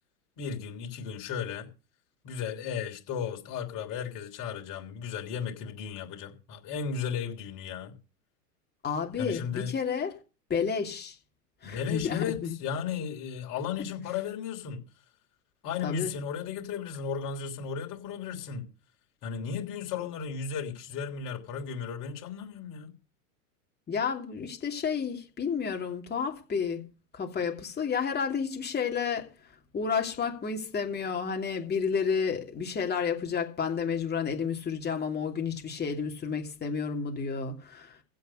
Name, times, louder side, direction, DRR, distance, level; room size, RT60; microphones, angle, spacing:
voice 1, 0.4-1.7 2.2-7.9 9.2-9.7 11.6-14.8 15.6-18.7 19.2-22.9, left 7 dB, 45° left, 3.4 m, -35 dB
voice 2, 8.8-10.1 10.5-11.2 11.6-12.5 15.8-16.1 23.9-26.9 27.1-29.3 29.7-38.0, left 6 dB, 20° left, 2.9 m, -31 dB
16.0 x 6.4 x 6.6 m
hypercardioid pair, 100°, 46 cm